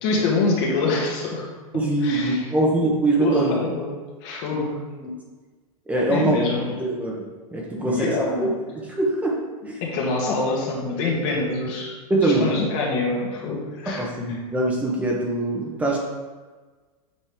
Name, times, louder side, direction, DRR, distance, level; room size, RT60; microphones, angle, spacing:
voice 1, 0.0-1.5 2.0-2.5 3.2-3.9 4.2-4.8 6.1-6.7 7.8-8.5 9.8-14.0, left 3 dB, 45° left, -2 dB, 2.0 m, -25 dB
voice 2, 1.7-3.6 4.5-4.6 5.0-5.1 5.9-6.4 6.8-7.3 7.5-8.1 8.4-8.5 8.8-9.3 9.7-9.8 12.1-12.5 13.9-16.0, right 2 dB, 10° right, -3 dB, 1.0 m, -23 dB
8.4 x 5.2 x 3.5 m, 1.4 s
supercardioid pair, 150°, 18 cm